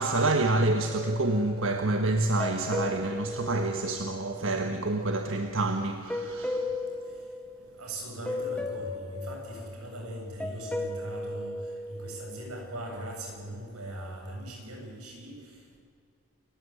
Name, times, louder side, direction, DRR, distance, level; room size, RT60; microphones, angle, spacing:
voice 1, 0.0-6.7, right 2 dB, 60° right, 1.4 m, -27 dB
sound 1, 0.8-4.7 6.1-8.0 8.3-12.8, left 2 dB, 5° left, 1.9 m, -36 dB
voice 2, 7.8-15.8, right 1 dB, 85° right, 7.8 m, -40 dB
28.5 x 15.5 x 9.4 m
head